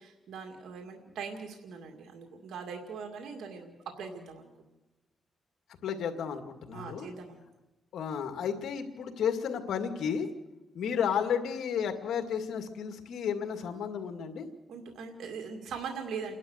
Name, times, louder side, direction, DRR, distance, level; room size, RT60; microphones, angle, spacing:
voice 1, 0.0-4.7 6.7-7.4 14.7-16.3, right 5 dB, 80° right, 3 dB, 2.3 m, -41 dB
voice 2, 5.8-7.1 7.9-10.3 10.7-14.5, left 7 dB, 80° left, 6 dB, 2.1 m, -32 dB
29.0 x 11.5 x 8.0 m, 1.1 s
cardioid pair, 90°, 0 cm